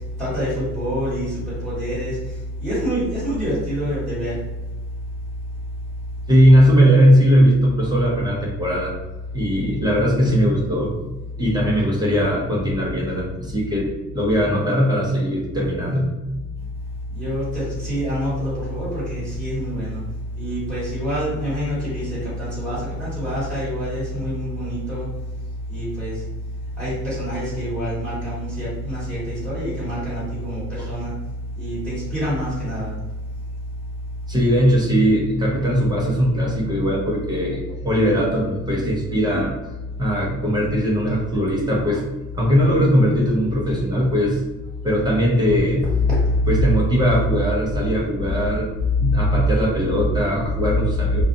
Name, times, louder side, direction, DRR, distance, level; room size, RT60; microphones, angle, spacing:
voice 1, 0.2-2.2 2.6-4.4 17.1-20.0 20.4-25.1 25.7-26.1 26.8-31.1 31.6-32.9 46.0-46.6 46.9-47.0 49.0-49.1, equal, 5° left, -11 dB, 1.4 m, -26 dB
voice 2, 6.3-8.9 9.3-10.9 11.4-16.1 30.8-30.9 34.3-39.5 40.0-42.1 42.3-44.4 44.8-45.9 46.5-48.7 49.0-51.2, equal, 15° right, -3 dB, 0.7 m, -19 dB
2.4 x 2.3 x 2.6 m, 1.1 s
cardioid pair, 110°, 30 cm